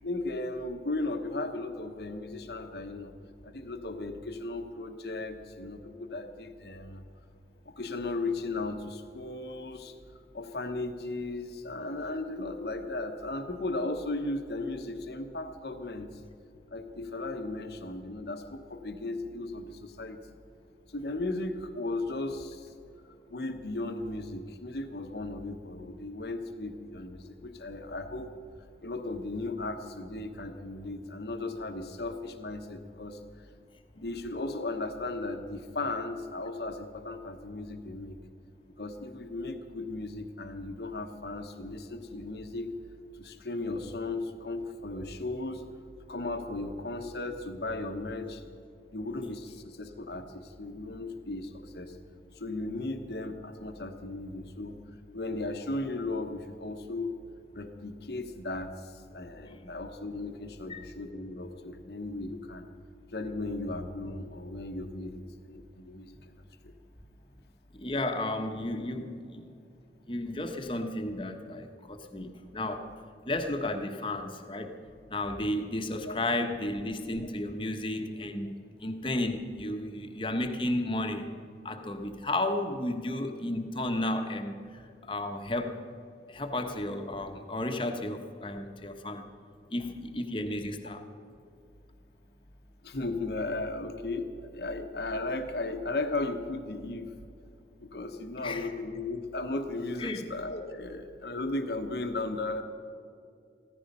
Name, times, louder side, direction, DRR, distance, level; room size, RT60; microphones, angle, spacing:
voice 1, 0.0-3.1 3.4-7.0 7.6-9.9 10.3-16.2 16.7-20.2 20.9-22.7 23.3-28.3 28.8-33.2 33.9-38.2 38.8-42.7 43.2-45.6 46.1-48.4 48.9-52.0 52.3-54.8 55.1-57.1 57.5-62.7 63.1-66.4 66.6-66.7 76.1-76.2 92.8-97.1 97.8-102.6, left 2 dB, 70° left, 6 dB, 1.1 m, -36 dB
voice 2, 67.7-69.5 70.1-72.9 73.2-74.8 75.1-81.3 81.6-85.8 86.3-89.3 89.7-91.0 98.4-98.7 100.0-100.3, left 1 dB, 30° left, 6 dB, 1.2 m, -33 dB
15.5 x 14.5 x 5.5 m, 2.5 s
head